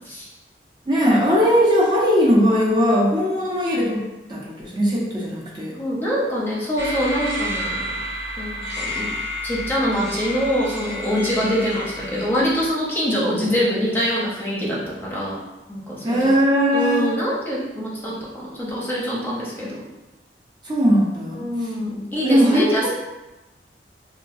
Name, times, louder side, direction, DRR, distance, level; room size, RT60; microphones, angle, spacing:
voice 1, 0.9-4.0 4.3-5.7 16.0-17.1 20.6-21.7 22.2-22.9, equal, 25° right, -6 dB, 0.6 m, -19 dB
voice 2, 5.8-7.9 8.4-9.1 9.4-15.4 15.7-16.2 16.7-19.8 21.3-22.9, equal, 10° left, -6 dB, 0.7 m, -24 dB
sound 1, 6.8-12.7, left 1 dB, 90° right, 1.1 m, -30 dB
3.7 x 2.3 x 2.5 m, 1.0 s
head